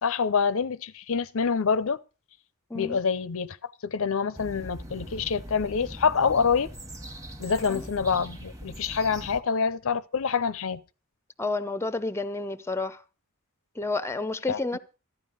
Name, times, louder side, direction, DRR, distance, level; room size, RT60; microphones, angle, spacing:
voice 1, 0.0-2.0 2.7-6.7 7.4-10.8 14.5-14.8, left 5 dB, 65° left, 0.6 m, -26 dB
sound 1, 4.3-9.4, equal, 15° right, 1.2 m, -41 dB
voice 2, 11.4-13.0 13.8-14.8, left 3 dB, 10° left, 0.6 m, -30 dB
13.5 x 9.9 x 5.3 m
head